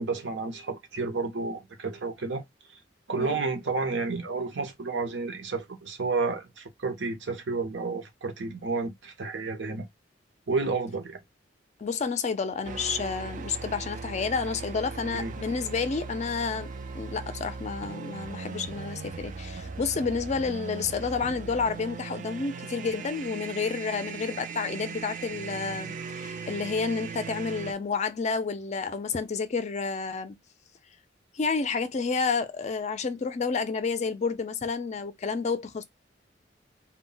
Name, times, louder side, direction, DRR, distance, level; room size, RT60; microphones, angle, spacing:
voice 1, 0.0-2.4 3.1-9.8 10.5-11.2 15.1-15.3, right 4 dB, 70° right, 0.7 m, -31 dB
voice 2, 11.8-30.4 31.3-35.8, left 5 dB, 40° left, 0.4 m, -30 dB
sound 1, 12.6-27.7, right 5 dB, 45° right, 0.3 m, -38 dB
2.2 x 2.1 x 3.7 m
head